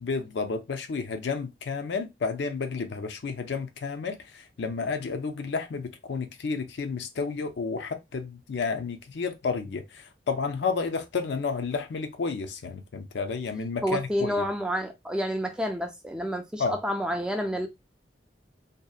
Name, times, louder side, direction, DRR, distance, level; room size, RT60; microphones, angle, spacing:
voice 1, 0.0-14.4 16.6-16.8, left 4 dB, 75° left, 0.4 m, -31 dB
voice 2, 13.8-17.7, equal, 5° right, 0.3 m, -29 dB
2.7 x 2.1 x 2.3 m
head